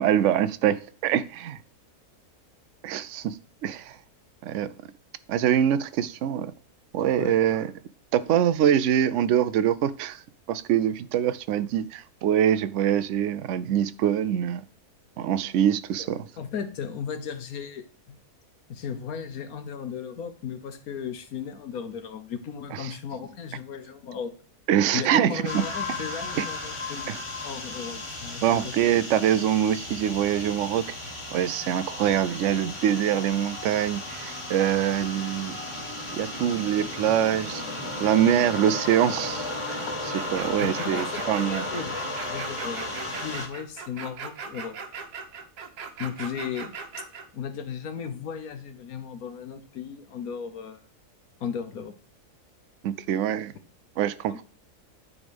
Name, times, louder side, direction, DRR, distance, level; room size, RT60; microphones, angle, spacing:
voice 1, 0.0-1.6 2.8-3.4 3.6-4.0 4.4-4.7 5.3-6.5 6.9-7.7 8.1-10.2 10.5-14.6 15.2-16.3 22.7-22.9 24.7-25.6 26.4-26.5 27.1-27.2 28.4-30.9 31.3-35.6 36.1-37.6 38.0-39.8 40.3-41.6 52.8-53.5 54.0-54.4, right 10 dB, 65° right, 0.8 m, -24 dB
voice 2, 16.4-18.2 18.7-24.4 24.9-28.7 40.6-42.0 42.3-44.8 46.0-46.7 47.3-50.8 51.4-51.9 54.3-54.4, left 7 dB, 65° left, 1.4 m, -36 dB
sound 1, 25.5-43.5, left 2 dB, 20° left, 1.4 m, -35 dB
sound 2, 40.2-47.3, right 5 dB, 90° right, 1.6 m, -39 dB
9.7 x 3.7 x 5.2 m
omnidirectional pair, 1.7 m